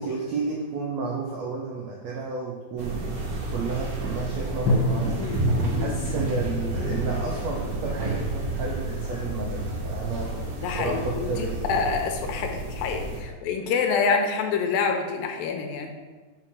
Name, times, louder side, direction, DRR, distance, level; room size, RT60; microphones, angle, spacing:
voice 1, 0.0-3.0 3.5-5.2 5.8-10.4 10.7-11.8 13.3-13.4, right 4 dB, 80° right, -2 dB, 1.5 m, -32 dB
sound 1, 2.8-13.2, right 2 dB, 60° right, 2.3 m, -30 dB
Drum, 4.7-8.7, left 1 dB, 45° left, 1.8 m, -30 dB
voice 2, 5.2-5.5 5.7-5.9 10.6-15.9, left 5 dB, 85° left, 4 dB, 2.4 m, -27 dB
sound 2, 5.5-11.7, right 1 dB, 65° left, 1.9 m, -38 dB
5.8 x 4.6 x 6.0 m, 1.3 s
omnidirectional pair, 4.1 m